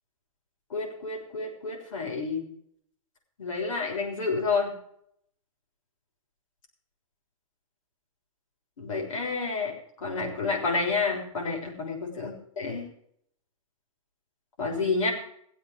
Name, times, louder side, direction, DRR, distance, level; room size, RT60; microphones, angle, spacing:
voice 1, 0.7-2.5 3.4-4.7 8.8-9.7 10.0-12.8 14.6-15.1, left 4 dB, 70° left, 1 dB, 6.4 m, -29 dB
18.0 x 8.1 x 6.6 m, 0.69 s
hypercardioid pair, 170°, 18 cm